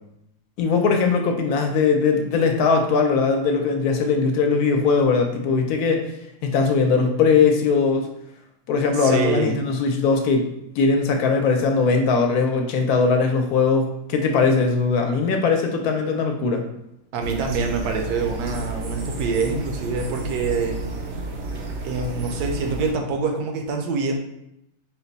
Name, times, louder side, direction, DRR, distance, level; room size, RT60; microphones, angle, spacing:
voice 1, 0.6-6.1 6.4-8.1 8.7-10.5 10.8-16.7, left 4 dB, 75° left, 3 dB, 1.0 m, -20 dB
voice 2, 8.9-9.6 17.1-20.8 21.8-24.2, right 4 dB, 80° right, 3 dB, 1.1 m, -25 dB
sound 1, 17.2-22.9, right 2 dB, 60° right, 0.7 m, -31 dB
4.2 x 2.2 x 3.9 m, 0.81 s
omnidirectional pair, 1.7 m